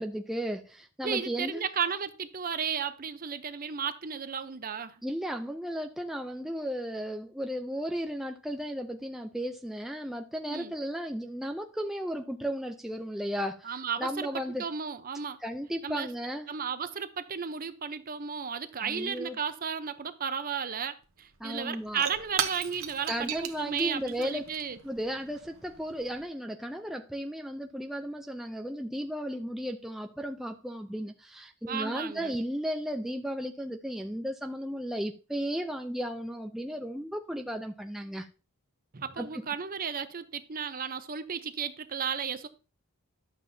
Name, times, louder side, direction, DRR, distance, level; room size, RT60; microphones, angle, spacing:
voice 1, 0.0-1.6 5.0-14.6 15.4-16.5 18.8-19.4 21.4-22.1 23.1-24.4 24.8-38.3 39.2-39.4, equal, ahead, 0.4 m, -35 dB
voice 2, 1.0-5.0 10.5-10.7 13.6-14.3 14.6-15.4 15.8-16.1 16.5-24.8 31.7-32.3 38.9-42.5, right 7 dB, 40° right, 0.7 m, -34 dB
Shatter / Crushing, 21.0-21.1 21.3-26.2, right 9 dB, 65° right, 1.0 m, -38 dB
11.5 x 7.4 x 2.7 m
head